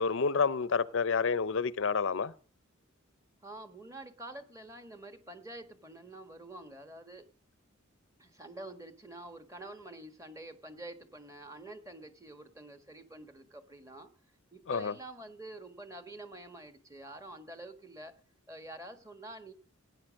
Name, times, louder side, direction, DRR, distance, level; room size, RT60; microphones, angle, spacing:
voice 1, 0.0-2.3 14.7-14.9, left 5 dB, 65° left, 0.6 m, -29 dB
voice 2, 3.4-7.2 8.2-14.1 14.5-18.1 18.5-19.5, right 2 dB, 15° right, 1.5 m, -47 dB
17.5 x 9.5 x 6.4 m
head